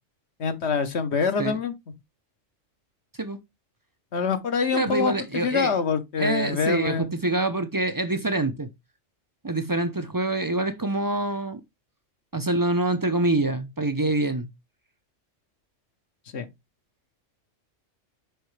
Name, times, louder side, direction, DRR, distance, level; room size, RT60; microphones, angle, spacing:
voice 1, 0.4-1.7 4.1-7.1 16.3-16.4, left 5 dB, 60° left, 1.2 m, -25 dB
voice 2, 4.7-5.7 6.2-8.7 9.4-11.6 12.3-14.5, right 2 dB, 30° right, 0.4 m, -25 dB
6.8 x 4.7 x 3.2 m
omnidirectional pair, 1.3 m